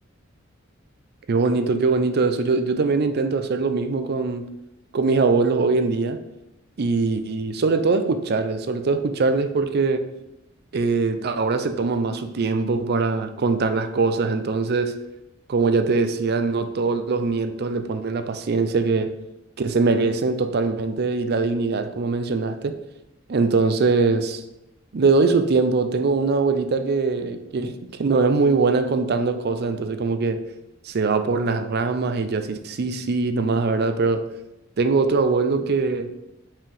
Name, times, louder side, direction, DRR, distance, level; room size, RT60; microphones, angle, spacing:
voice 1, 1.3-4.5 4.9-6.2 6.8-10.1 10.7-15.0 15.5-19.1 19.6-22.8 23.3-24.4 24.9-30.4 30.8-34.2 34.8-36.2, right 4 dB, 55° right, 0.5 m, -22 dB
5.9 x 4.7 x 3.4 m
head